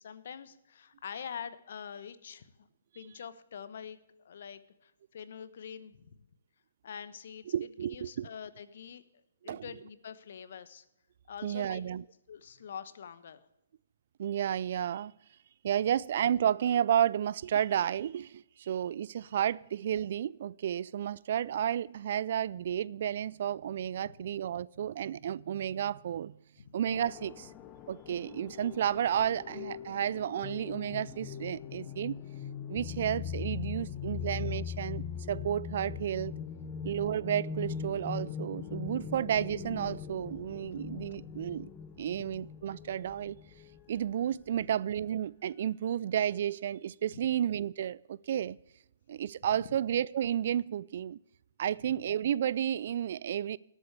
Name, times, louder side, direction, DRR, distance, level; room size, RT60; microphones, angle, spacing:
voice 1, 0.0-2.7 2.9-6.2 6.8-7.5 7.8-9.0 9.4-10.8 11.3-11.8 12.3-13.4 24.0-24.1 26.6-26.7 31.8-31.9 34.1-34.3 36.7-36.9 41.1-41.2 47.1-47.3, left 7 dB, 60° left, 1.0 m, -45 dB
voice 2, 7.5-8.3 9.4-9.6 11.4-12.0 14.2-15.1 15.6-26.4 26.7-27.5 27.9-32.2 32.7-36.4 36.8-41.7 42.0-43.4 43.9-48.6 49.1-51.2 51.6-53.6, right 10 dB, 55° right, 0.3 m, -32 dB
sound 1, 26.9-44.0, left 7 dB, 25° left, 0.7 m, -41 dB
19.0 x 8.4 x 3.3 m
figure-of-eight pair, 130°, 0 cm